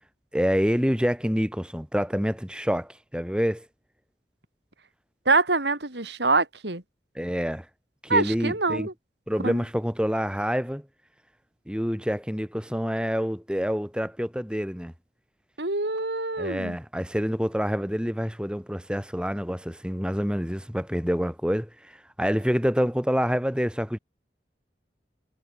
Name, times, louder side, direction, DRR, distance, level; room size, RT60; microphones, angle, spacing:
voice 1, 0.3-3.7 7.1-7.7 8.0-8.9 9.3-10.9 11.7-14.9 16.4-24.0, equal, 5° right, 4.3 m, -27 dB
voice 2, 5.3-6.8 8.1-8.9 9.4-9.6 15.6-16.8, right 3 dB, 75° right, 3.7 m, -25 dB
head